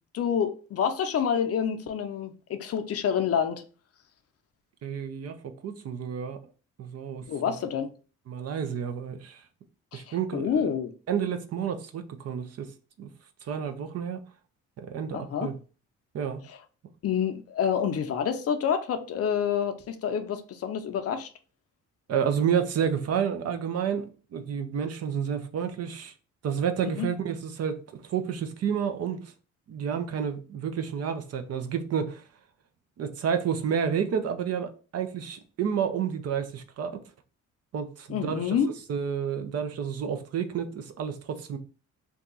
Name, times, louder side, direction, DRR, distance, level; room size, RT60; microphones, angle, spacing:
voice 1, 0.1-3.6 7.3-7.9 9.9-10.0 10.3-10.9 15.1-15.5 17.0-21.3 26.8-27.1 38.1-38.7, left 7 dB, 55° left, 0.5 m, -28 dB
voice 2, 4.8-6.4 6.8-7.6 8.3-9.4 9.9-10.7 11.1-12.7 13.0-13.1 13.4-14.2 14.8-15.5 16.1-16.4 22.1-24.1 24.3-26.1 26.4-29.3 29.7-32.2 33.0-37.0 37.7-38.6 38.9-41.6, right 7 dB, 55° right, 0.6 m, -30 dB
2.7 x 2.3 x 3.8 m
cardioid pair, 90°, 30 cm